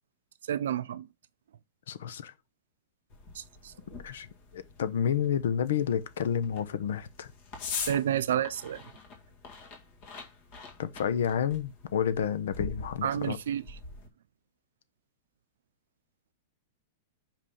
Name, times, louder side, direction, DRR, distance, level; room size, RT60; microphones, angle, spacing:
voice 1, 0.5-1.1 3.4-3.7 7.8-8.8 13.0-13.6, right 10 dB, 80° right, 0.6 m, -30 dB
voice 2, 1.9-2.3 4.0-4.3 4.5-7.3 10.8-13.4, left 8 dB, 70° left, 0.9 m, -30 dB
sound 1, 3.1-14.1, left 5 dB, 30° left, 1.8 m, -43 dB
5.4 x 5.3 x 5.6 m
supercardioid pair, 180°, 0 cm